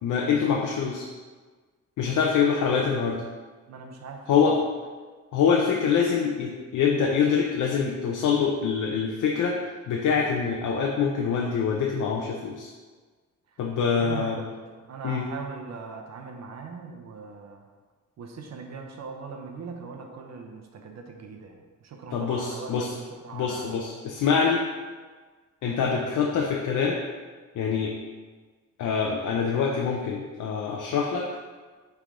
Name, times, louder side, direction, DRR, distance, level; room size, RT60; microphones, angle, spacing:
voice 1, 0.0-1.1 2.0-3.2 4.3-4.6 5.3-9.6 9.9-12.7 13.6-14.4 15.0-15.3 22.1-23.0 23.3-24.6 25.6-27.0 27.5-27.9 28.8-31.3, left 6 dB, 80° left, -1 dB, 0.7 m, -25 dB
voice 2, 2.7-3.1 3.7-4.6 14.0-17.6 18.2-23.8 25.9-26.2, right 5 dB, 60° right, 3 dB, 0.8 m, -40 dB
5.9 x 3.5 x 4.9 m, 1.4 s
cardioid pair, 110°, 30 cm